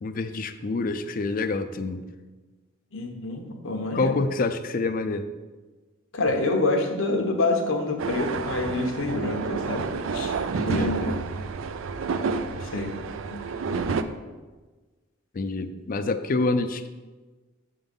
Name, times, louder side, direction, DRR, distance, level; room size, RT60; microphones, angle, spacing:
voice 1, 0.0-2.1 3.9-5.3 10.7-11.2 15.3-16.9, left 3 dB, 45° left, 10 dB, 0.4 m, -27 dB
voice 2, 2.9-4.1 6.1-11.1 12.5-12.9 13.3-13.4, left 2 dB, 80° left, 3 dB, 1.0 m, -27 dB
sound 1, 8.0-14.0, right 4 dB, 75° right, 0.4 m, -29 dB
8.0 x 3.8 x 5.3 m, 1.3 s
head